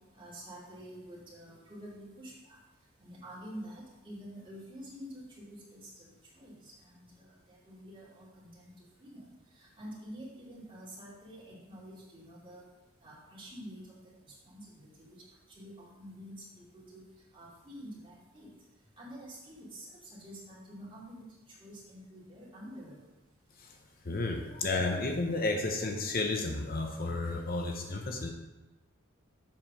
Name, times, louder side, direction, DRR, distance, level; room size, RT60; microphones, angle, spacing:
voice 1, 0.1-2.6 3.0-6.1 6.3-8.7 9.0-12.6 13.0-13.9 14.2-15.2 15.5-17.0 17.3-18.5 19.0-23.0, equal, 25° right, -6 dB, 2.5 m, -48 dB
voice 2, 24.0-28.3, left 2 dB, 45° left, 3 dB, 0.7 m, -32 dB
7.4 x 4.9 x 6.1 m, 1.1 s
head